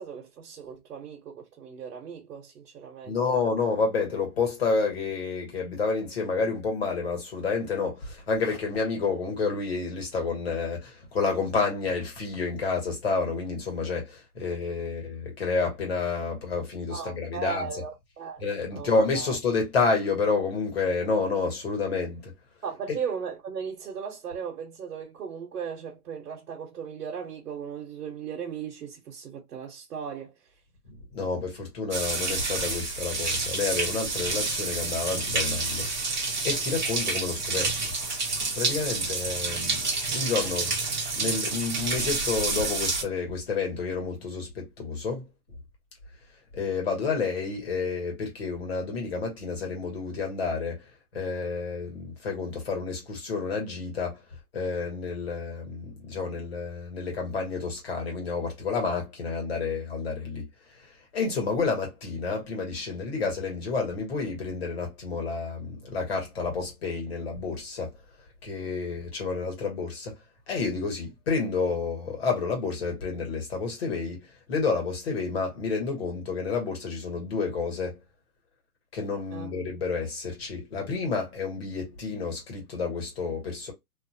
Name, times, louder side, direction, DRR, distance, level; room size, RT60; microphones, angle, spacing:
voice 1, 0.0-3.4 16.9-18.4 18.7-19.4 22.6-30.5 40.5-40.6 79.3-79.5, right 7 dB, 65° right, 0.9 m, -37 dB
voice 2, 3.0-17.7 18.4-22.3 30.9-37.8 38.5-40.7 41.1-45.3 46.5-50.8 51.1-54.2 54.5-60.5 60.8-67.9 68.4-70.1 70.5-78.0 78.9-83.7, left 4 dB, 40° left, 1.2 m, -29 dB
sound 1, 31.9-43.0, right 3 dB, 30° right, 0.6 m, -29 dB
2.6 x 2.2 x 2.6 m
hypercardioid pair, 170°, 46 cm